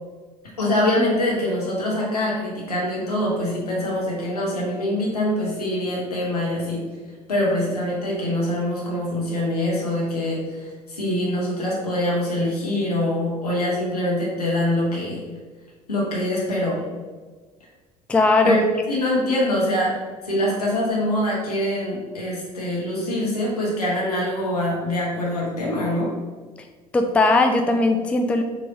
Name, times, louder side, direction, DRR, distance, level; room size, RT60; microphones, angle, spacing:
voice 1, 0.6-6.8 7.3-15.2 15.9-16.8 18.4-18.6 18.9-19.9 20.2-26.1, left 1 dB, 80° left, -4 dB, 1.0 m, -24 dB
voice 2, 18.1-18.6 26.9-28.4, left 2 dB, 5° left, 5 dB, 0.3 m, -18 dB
4.0 x 3.2 x 2.7 m, 1.4 s
figure-of-eight pair, 60°, 19 cm